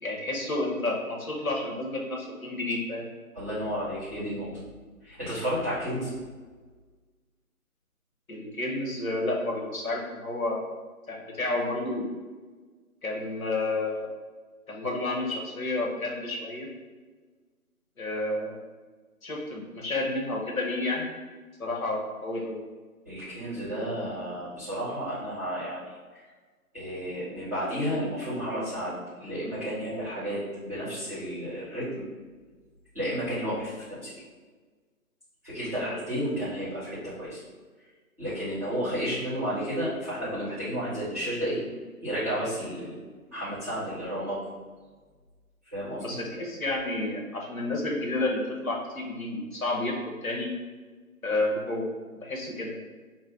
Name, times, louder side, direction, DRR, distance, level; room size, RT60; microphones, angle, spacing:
voice 1, 0.0-3.0 8.3-10.6 11.1-12.1 13.0-14.1 14.7-16.7 18.0-18.6 19.2-21.1 21.6-22.6 35.8-35.9 46.0-50.5 51.2-51.9 52.2-52.8, left 2 dB, 65° left, -1 dB, 1.2 m, -30 dB
voice 2, 3.3-4.5 5.0-6.1 23.0-26.2 26.7-31.9 32.9-34.1 35.4-37.4 38.2-41.6 42.0-43.0 43.3-44.4 45.7-46.2, equal, 10° right, -12 dB, 0.9 m, -32 dB
5.0 x 2.2 x 3.8 m, 1.4 s
figure-of-eight pair, 165°, 45 cm